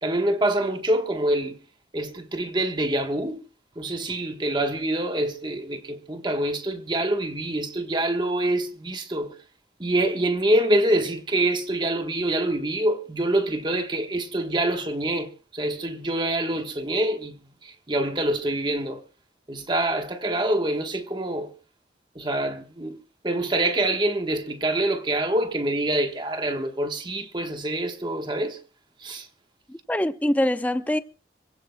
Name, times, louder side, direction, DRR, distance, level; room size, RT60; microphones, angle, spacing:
voice 1, 0.0-1.6 1.9-3.4 3.8-9.3 9.8-19.0 19.5-21.5 22.1-23.0 23.2-28.6 29.0-29.3, right 1 dB, 25° right, 1.2 m, -25 dB
voice 2, 29.7-31.0, left 1 dB, 10° left, 0.6 m, -24 dB
26.0 x 16.5 x 2.2 m
head